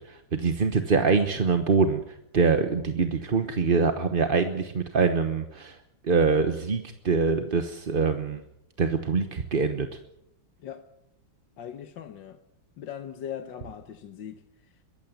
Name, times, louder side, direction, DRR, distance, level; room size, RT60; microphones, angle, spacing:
voice 1, 0.1-2.0 2.3-5.8 6.0-8.4 8.8-9.9, right 5 dB, 35° right, 1.0 m, -24 dB
voice 2, 11.6-12.4 12.8-14.4, left 9 dB, 65° left, 1.7 m, -39 dB
22.5 x 15.0 x 9.4 m
omnidirectional pair, 2.2 m